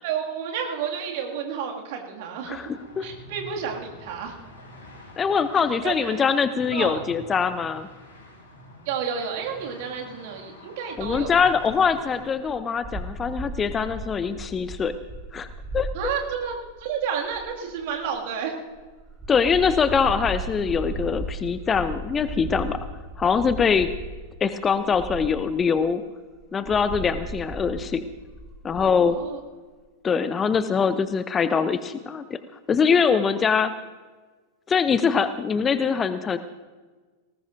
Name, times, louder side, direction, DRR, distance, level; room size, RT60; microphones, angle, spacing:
voice 1, 0.0-2.7 3.0-4.4 5.8-6.2 6.7-7.0 8.9-11.5 15.9-18.5 29.1-29.4, right 7 dB, 50° right, 1 dB, 2.2 m, -31 dB
sound 1, 2.4-12.2, left 1 dB, 65° left, 4.7 m, -46 dB
voice 2, 2.5-3.1 5.2-7.9 11.0-14.9 15.3-15.5 15.7-16.1 19.3-22.8 23.2-23.9 24.4-26.0 26.5-28.0 28.6-29.2 30.0-32.4 32.7-33.7 34.7-36.4, left 6 dB, 20° left, 13 dB, 0.6 m, -23 dB
sound 2, 11.0-18.1 18.7-24.2 24.7-25.7 26.3-29.2, right 1 dB, 20° right, 4.8 m, -36 dB
19.0 x 19.0 x 2.6 m, 1.4 s
figure-of-eight pair, 90°, 0 cm